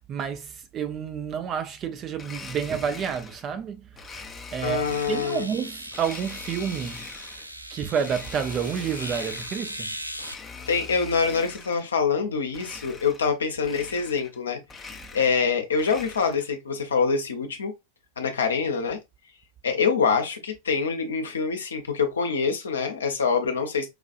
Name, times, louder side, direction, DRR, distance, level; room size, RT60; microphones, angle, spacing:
voice 1, 0.0-3.9 4.5-7.1 7.7-9.9, right 7 dB, 30° right, 0.6 m, -29 dB
Domestic sounds home sounds, 2.1-3.5 4.0-5.4 5.9-7.5 7.9-9.7 10.1-11.9 12.5-13.4 13.6-14.4 14.6-16.5, left 4 dB, 15° left, 0.7 m, -42 dB
sound 1, 3.9-4.0 4.8-10.3, equal, 90° right, 0.3 m, -38 dB
voice 2, 4.6-5.5 10.7-14.6 15.1-17.7 18.2-19.0 19.6-23.9, left 5 dB, 70° left, 0.8 m, -25 dB
4.9 x 2.4 x 2.5 m
figure-of-eight pair, 90°, 0 cm